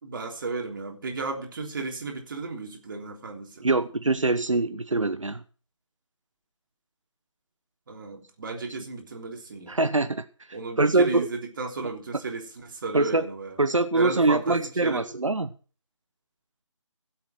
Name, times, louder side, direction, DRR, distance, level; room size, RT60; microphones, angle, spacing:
voice 1, 0.0-3.7 7.9-9.8 10.5-13.6 13.9-15.1, right 3 dB, 40° right, 3.4 m, -34 dB
voice 2, 3.6-5.4 9.7-10.2 10.8-11.3 12.9-13.3 13.6-15.5, right 2 dB, 85° right, 1.0 m, -23 dB
16.0 x 7.9 x 6.2 m
figure-of-eight pair, 155°, 16 cm